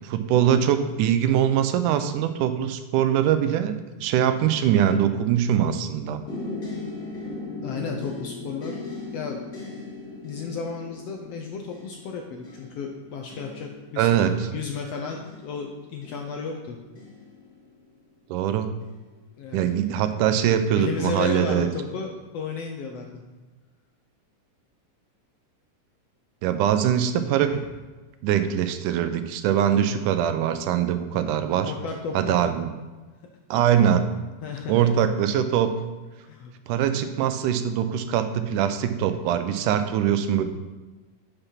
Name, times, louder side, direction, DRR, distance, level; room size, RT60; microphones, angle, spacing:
voice 1, 0.0-3.7 4.0-6.2 14.0-14.3 18.3-18.7 19.5-21.7 26.4-27.6 28.2-31.7 32.1-32.7 33.5-34.1 34.7-35.7 36.7-40.4, right 9 dB, 85° right, 10 dB, 2.2 m, -22 dB
sound 1, 6.3-18.1 18.8-19.3 19.7-19.9, left 3 dB, 30° left, 2.2 m, -39 dB
voice 2, 7.6-8.8 9.1-9.4 10.2-14.3 14.5-16.8 19.4-19.7 20.7-23.2 27.5-27.6 31.6-32.6 34.4-34.9 36.2-36.5, left 5 dB, 75° left, 2 dB, 1.5 m, -33 dB
7.0 x 6.9 x 5.7 m, 1.2 s
omnidirectional pair, 3.6 m